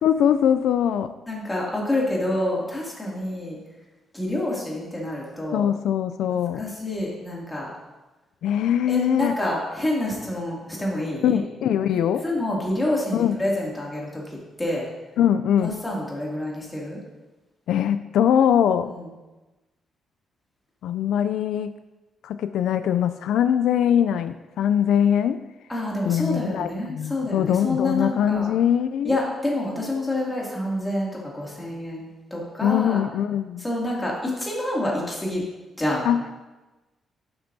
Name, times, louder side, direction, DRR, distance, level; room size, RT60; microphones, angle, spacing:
voice 1, 0.0-1.1 5.5-6.6 8.4-9.4 11.2-12.2 13.1-13.4 15.2-15.8 17.7-18.9 20.8-21.8 22.2-25.4 26.1-29.1 32.6-33.6 36.0-36.4, left 9 dB, 85° left, 11 dB, 0.3 m, -22 dB
voice 2, 1.3-3.6 4.1-5.7 6.6-7.7 8.9-11.4 11.9-14.9 15.6-17.0 18.9-19.0 25.7-28.5 29.0-33.0 33.6-35.4 35.8-36.1, left 1 dB, 10° left, -4 dB, 2.4 m, -27 dB
11.0 x 7.8 x 2.7 m, 1.1 s
cardioid pair, 130°, 0 cm